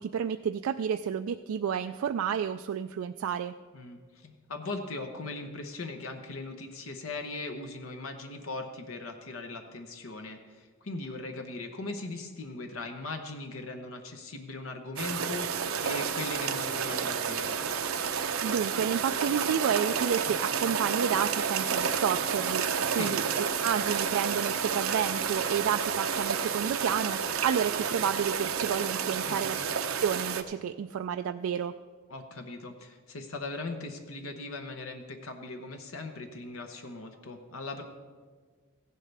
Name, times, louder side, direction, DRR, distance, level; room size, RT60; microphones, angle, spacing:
voice 1, 0.0-3.5 18.4-29.6 30.0-31.7, right 8 dB, 70° right, 8 dB, 0.3 m, -30 dB
voice 2, 3.7-17.6 22.9-23.2 29.3-29.7 32.1-37.8, left 2 dB, 75° left, 5 dB, 0.9 m, -39 dB
sound 1, 15.0-30.4, right 6 dB, 85° right, 0.7 m, -30 dB
15.5 x 11.0 x 3.4 m, 1.5 s
head